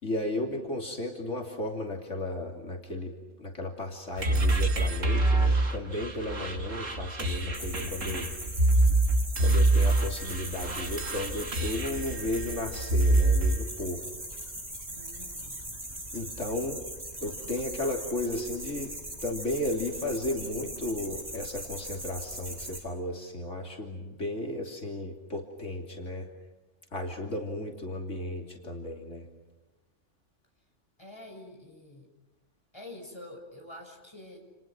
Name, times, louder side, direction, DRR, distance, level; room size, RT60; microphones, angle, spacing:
voice 1, 0.0-3.1 3.4-8.3 9.4-14.0 16.1-16.8 17.2-26.3 26.9-29.3, left 1 dB, 75° left, 1 dB, 3.5 m, -34 dB
sound 1, 4.2-13.6, right 2 dB, 90° right, 2.8 m, -26 dB
sound 2, 7.5-22.8, right 1 dB, 35° right, 6.5 m, -40 dB
voice 2, 14.9-15.6 31.0-32.1 32.7-34.4, left 1 dB, 20° left, 2 dB, 6.4 m, -47 dB
30.0 x 29.5 x 6.1 m, 1.1 s
omnidirectional pair, 1.3 m